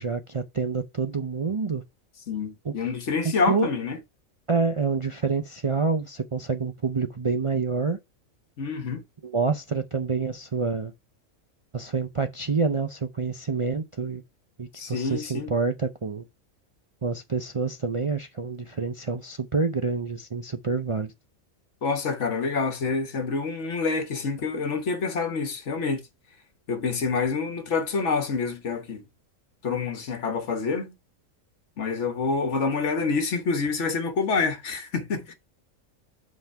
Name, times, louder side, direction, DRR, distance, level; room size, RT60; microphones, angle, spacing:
voice 1, 0.0-1.8 2.6-2.7 3.5-3.7 4.5-8.0 9.2-10.9 11.7-14.2 14.6-16.2 17.0-21.1, right 4 dB, 50° right, 0.3 m, -27 dB
voice 2, 2.3-4.0 8.6-9.0 14.7-15.5 21.8-26.0 26.7-29.0 29.6-30.9 31.8-35.3, left 4 dB, 60° left, 1.5 m, -27 dB
5.8 x 5.0 x 5.7 m
omnidirectional pair, 1.4 m